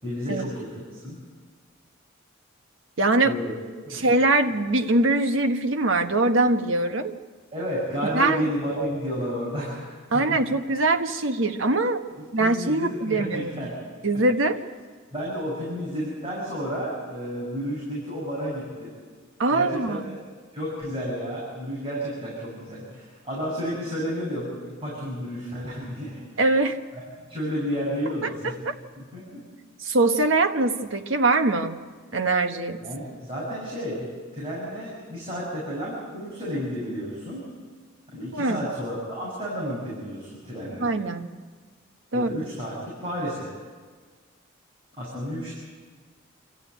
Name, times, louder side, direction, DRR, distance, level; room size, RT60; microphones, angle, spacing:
voice 1, 0.0-1.2 3.2-3.5 3.8-4.1 7.5-10.6 12.1-13.7 15.1-18.9 19.5-20.2 20.5-26.2 27.3-28.6 29.0-29.4 32.8-34.1 34.3-37.4 38.1-40.9 42.1-43.5 45.0-45.5, equal, 30° right, -7 dB, 7.4 m, -31 dB
voice 2, 3.0-3.4 3.9-7.1 8.1-8.4 10.1-12.0 12.3-13.7 14.0-14.6 19.4-20.2 26.4-26.8 28.4-28.7 29.8-31.8 32.1-32.8 38.3-38.6 40.8-41.3 42.1-42.3, right 2 dB, 75° right, 6 dB, 1.4 m, -22 dB
28.0 x 13.5 x 9.2 m, 1.5 s
head